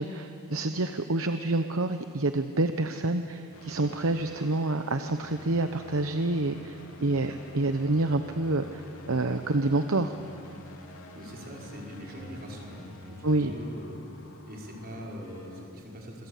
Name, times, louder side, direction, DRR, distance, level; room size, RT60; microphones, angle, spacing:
voice 1, 0.0-10.1 13.2-13.5, right 2 dB, 65° right, 8 dB, 1.0 m, -28 dB
sound 1, 3.5-15.7, left 2 dB, 70° left, 3.5 m, -48 dB
voice 2, 11.1-16.3, equal, 45° right, -2 dB, 5.7 m, -42 dB
26.5 x 25.0 x 8.5 m, 2.7 s
head